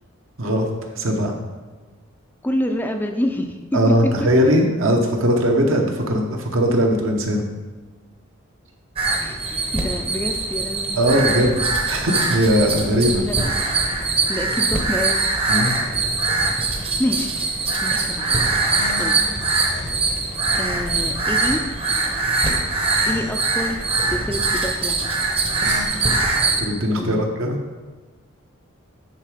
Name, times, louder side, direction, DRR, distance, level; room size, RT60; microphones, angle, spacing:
voice 1, 0.9-1.3 3.7-7.4 11.0-11.5 11.8-13.2 15.5-15.8 16.7-16.8 26.6-27.6, equal, 65° right, 2 dB, 1.0 m, -19 dB
voice 2, 2.4-3.9 4.2-4.3 9.2-10.9 12.2-12.4 13.2-13.5 14.3-15.2 17.0-18.6 19.0-19.4 20.5-21.6 23.1-23.8 24.1-25.1 27.0-27.2, left 1 dB, 10° left, 4 dB, 0.4 m, -27 dB
sound 1, 9.0-26.6, right 3 dB, 25° right, 0.8 m, -22 dB
sound 2, 12.1-13.4 14.0-15.1 15.6-16.7 18.2-20.3 20.8-22.0 22.5-23.6 25.1-25.9, left 3 dB, 50° left, 0.7 m, -39 dB
9.1 x 3.9 x 5.0 m, 1.3 s
head